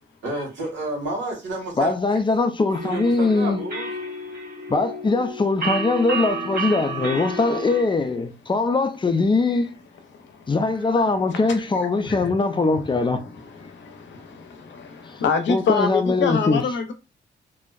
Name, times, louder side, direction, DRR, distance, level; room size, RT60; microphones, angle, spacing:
voice 1, 0.2-1.9 2.8-3.9, right 2 dB, 80° right, 1.3 m, -30 dB
voice 2, 1.8-3.6 4.7-9.8 10.5-13.2 15.1-15.2 15.5-16.6, left 3 dB, 25° left, 0.4 m, -21 dB
sound 1, 2.7-7.8, right 2 dB, 55° right, 1.4 m, -30 dB
voice 3, 10.1-10.6 11.3-11.4 11.9-12.3 12.9-16.9, left 5 dB, 85° left, 0.5 m, -27 dB
2.5 x 2.1 x 2.3 m
cardioid pair, 75°, 19 cm